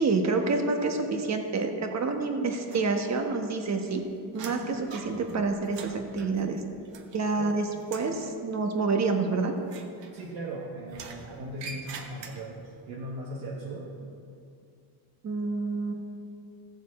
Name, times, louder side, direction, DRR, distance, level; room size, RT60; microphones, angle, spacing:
voice 1, 0.0-4.0 4.3-6.6 7.1-9.5 15.2-15.9, right 3 dB, 35° right, 4 dB, 1.2 m, -28 dB
sound 1, 2.7-3.4 3.7-7.5 7.8-8.2 9.6-10.5 10.9-12.7, right 5 dB, 60° right, 1.2 m, -44 dB
voice 2, 10.1-13.9, right 1 dB, 80° right, -5 dB, 1.7 m, -38 dB
15.5 x 7.1 x 4.3 m, 2.4 s
cardioid pair, 130°, 48 cm